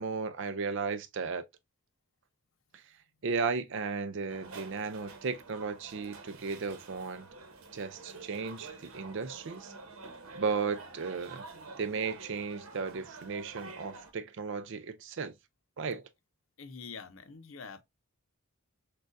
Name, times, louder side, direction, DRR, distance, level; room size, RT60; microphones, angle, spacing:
voice 1, 0.0-1.4 3.2-7.3 7.7-9.7 10.4-11.4 11.8-15.3 15.8-16.0, right 5 dB, 55° right, 0.5 m, -35 dB
sound 1, 4.3-14.1, right 3 dB, 80° right, 1.0 m, -48 dB
voice 2, 16.6-17.8, left 5 dB, 65° left, 0.6 m, -45 dB
6.3 x 2.3 x 2.5 m
head